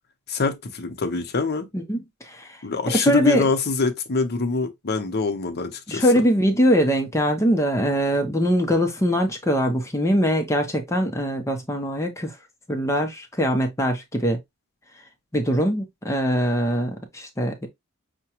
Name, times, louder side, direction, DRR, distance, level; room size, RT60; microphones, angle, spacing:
voice 1, 0.3-1.7 2.6-6.1, left 4 dB, 50° left, 0.7 m, -25 dB
voice 2, 1.7-2.6 2.9-3.5 5.9-12.3 12.7-14.4 15.3-17.7, equal, 15° left, 0.6 m, -22 dB
5.8 x 2.2 x 2.9 m
head